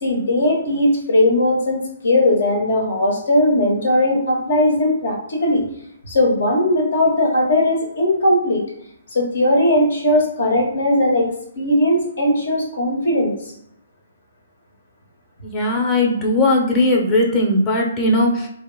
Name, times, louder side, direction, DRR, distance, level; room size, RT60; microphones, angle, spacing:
voice 1, 0.0-5.6 6.1-8.6 9.1-11.3 11.6-13.3, left 1 dB, 70° left, 0 dB, 1.1 m, -18 dB
voice 2, 15.4-18.5, left 1 dB, 20° left, -1 dB, 0.7 m, -18 dB
2.9 x 2.8 x 2.2 m, 0.73 s
figure-of-eight pair, 135°, 0 cm